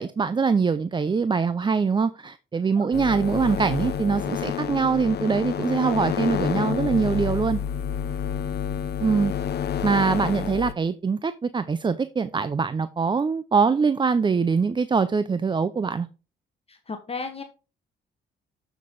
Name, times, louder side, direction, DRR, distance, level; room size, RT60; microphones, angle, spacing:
voice 1, 0.0-7.6 9.0-9.3 9.8-16.1, right 5 dB, 25° right, 13 dB, 0.5 m, -23 dB
sound 1, 2.9-10.7, left 9 dB, 55° left, 0.7 m, -29 dB
voice 2, 16.7-17.4, left 4 dB, 30° left, 6 dB, 1.1 m, -34 dB
7.4 x 6.0 x 3.9 m, 0.33 s
cardioid pair, 90°, 20 cm